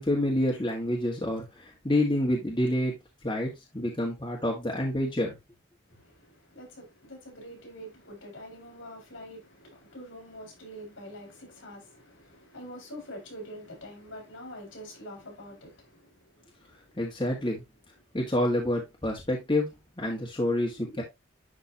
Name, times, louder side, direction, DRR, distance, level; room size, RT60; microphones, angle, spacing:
voice 1, 0.0-3.0 3.2-5.4 17.0-17.6 18.1-21.0, left 1 dB, 25° left, 1.7 m, -28 dB
voice 2, 5.9-17.0 20.6-21.0, equal, 70° left, 4.8 m, -46 dB
11.5 x 3.8 x 2.8 m
head